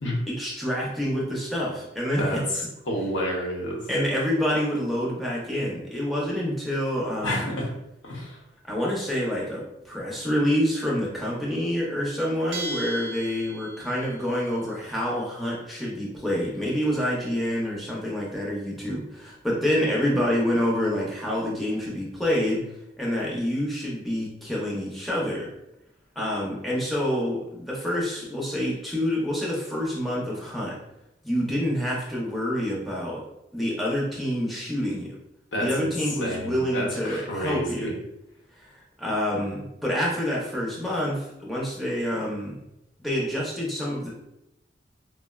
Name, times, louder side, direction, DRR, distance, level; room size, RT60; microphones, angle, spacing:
voice 1, 0.3-2.4 3.9-7.5 8.7-22.6 23.0-25.5 26.2-30.8 31.2-33.2 33.5-35.2 35.6-37.9 38.6-38.7 39.0-42.6 43.0-44.1, equal, ahead, -5 dB, 0.5 m, -27 dB
voice 2, 2.9-3.8 7.2-7.7 8.0-8.4 35.5-35.9 36.2-37.9, equal, 85° left, -2 dB, 0.8 m, -29 dB
Bell, 12.5-14.1, right 3 dB, 70° right, 0.3 m, -36 dB
3.9 x 2.0 x 2.2 m, 0.85 s
head